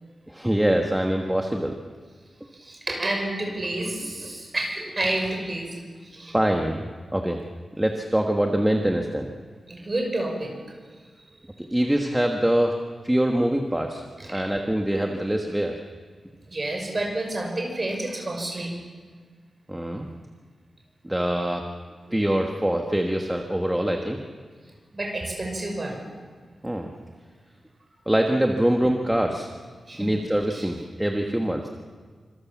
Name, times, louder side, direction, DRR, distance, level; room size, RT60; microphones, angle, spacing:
voice 1, 0.3-1.7 6.3-7.4 7.8-9.3 11.7-12.8 13.0-14.0 14.3-15.8 19.7-20.1 21.0-21.6 22.1-24.2 26.6-26.9 28.1-29.5 30.0-31.7, right 1 dB, 5° right, 2 dB, 1.4 m, -24 dB
voice 2, 2.5-6.4 9.7-10.5 14.2-14.5 16.5-18.7 24.9-26.0 29.9-30.1 30.5-30.8, right 1 dB, 25° right, 1 dB, 6.0 m, -30 dB
27.5 x 26.0 x 7.3 m, 1.6 s
wide cardioid pair, 165°, 0 cm